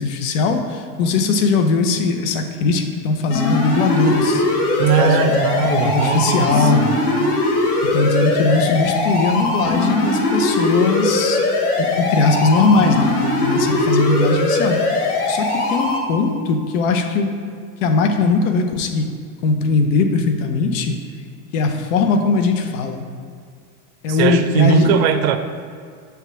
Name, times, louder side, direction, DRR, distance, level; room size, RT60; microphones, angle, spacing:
voice 1, 0.0-4.4 4.8-6.9 7.8-11.4 11.8-14.8 15.3-17.4 17.8-19.1 19.4-21.0 21.5-23.1 24.0-25.0, left 4 dB, 60° left, 6 dB, 0.9 m, -19 dB
sound 1, 3.3-16.0, left 2 dB, 80° left, 1.7 m, -20 dB
voice 2, 4.8-7.0 24.1-25.4, right 9 dB, 75° right, 9 dB, 0.7 m, -19 dB
7.2 x 3.5 x 6.2 m, 2.1 s
supercardioid pair, 135°, 44 cm